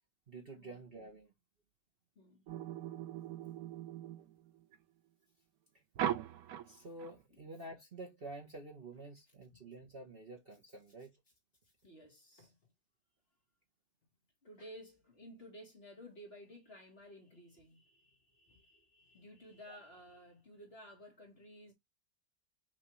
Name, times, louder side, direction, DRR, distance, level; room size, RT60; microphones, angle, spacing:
voice 1, 0.3-1.3 6.7-11.1 19.7-19.8, right 2 dB, 40° right, 1.2 m, -49 dB
sound 1, 2.5-4.8 6.0-7.1, right 11 dB, 65° right, 1.0 m, -40 dB
voice 2, 11.8-12.6 14.4-21.7, equal, 35° left, 1.8 m, -55 dB
6.0 x 2.7 x 3.0 m
omnidirectional pair, 1.8 m